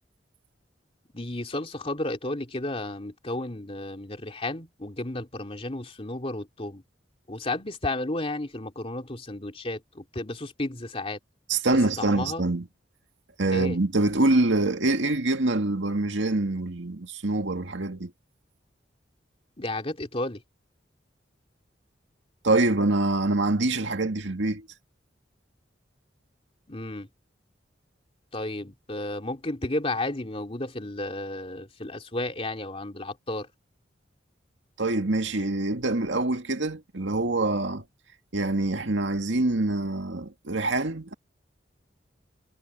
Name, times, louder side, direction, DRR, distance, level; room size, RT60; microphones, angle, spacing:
voice 1, 1.1-6.8 7.3-11.2 12.0-12.4 13.5-13.8 19.6-20.4 26.7-27.1 28.3-33.5, left 2 dB, 30° left, 2.8 m, -33 dB
voice 2, 11.5-12.7 13.4-18.1 22.4-24.7 34.8-37.8 38.3-41.1, right 2 dB, 80° right, 2.1 m, -25 dB
head